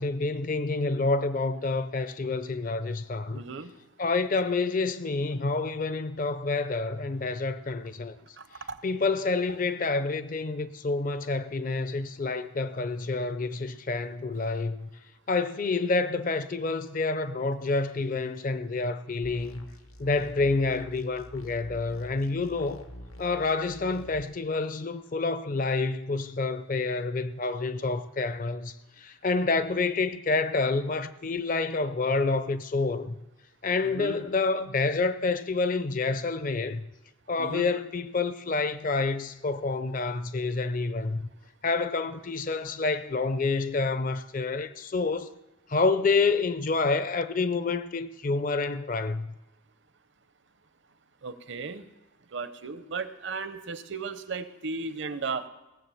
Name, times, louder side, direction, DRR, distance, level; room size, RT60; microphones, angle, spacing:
voice 1, 0.0-3.4 4.0-8.2 8.8-14.9 15.3-19.7 20.0-22.9 23.2-33.1 33.6-36.8 37.3-41.2 41.6-45.3 45.7-49.3, left 3 dB, 40° left, 0.5 m, -28 dB
voice 2, 3.3-3.7 8.4-8.8 33.8-34.2 37.4-37.7 51.2-51.9 52.3-55.5, right 4 dB, 55° right, 0.7 m, -35 dB
Saw Buzz, 19.2-24.2, equal, 90° left, 1.2 m, -46 dB
17.5 x 7.4 x 7.0 m
head